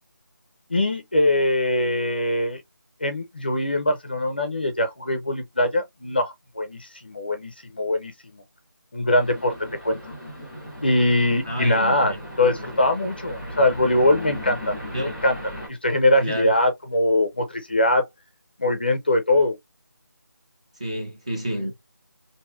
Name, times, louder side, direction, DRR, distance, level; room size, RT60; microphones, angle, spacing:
voice 1, 0.7-2.6 3.0-8.4 8.9-9.5 9.8-10.0 10.8-14.8 15.0-15.4 15.7-18.1 18.6-19.6, left 1 dB, 30° left, 0.5 m, -22 dB
sound 1, 9.2-15.7, equal, 5° left, 1.2 m, -37 dB
voice 2, 11.5-12.2 14.9-15.1 16.2-16.5 20.8-21.7, equal, 20° right, 0.5 m, -29 dB
3.1 x 2.6 x 2.3 m
figure-of-eight pair, 175°, 10 cm